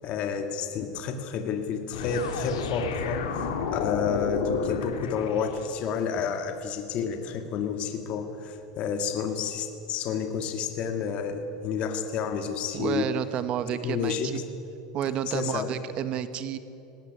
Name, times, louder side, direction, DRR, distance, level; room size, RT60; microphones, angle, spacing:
voice 1, 0.0-13.1 13.8-14.4 15.3-15.7, left 6 dB, 45° left, 6 dB, 2.2 m, -30 dB
sound 1, 1.9-5.9, left 5 dB, 85° left, 3.3 m, -31 dB
voice 2, 12.7-14.3 14.9-16.6, right 9 dB, 40° right, 12 dB, 1.5 m, -30 dB
19.5 x 18.5 x 9.9 m, 3.0 s
supercardioid pair, 125°, 3 cm